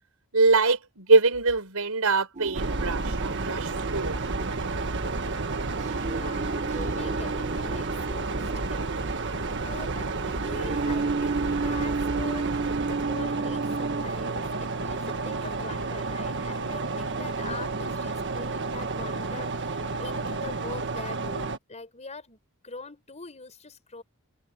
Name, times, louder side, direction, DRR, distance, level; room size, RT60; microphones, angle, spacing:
voice 1, 0.3-4.2, right 3 dB, 80° right, 4.7 m, -23 dB
sound 1, 2.4-14.0, right 4 dB, 35° right, 0.9 m, -33 dB
sound 2, 2.5-21.6, right 3 dB, 55° right, 1.6 m, -31 dB
voice 2, 5.1-12.5 12.9-22.4 22.6-24.0, left 3 dB, 30° left, 5.3 m, -43 dB
head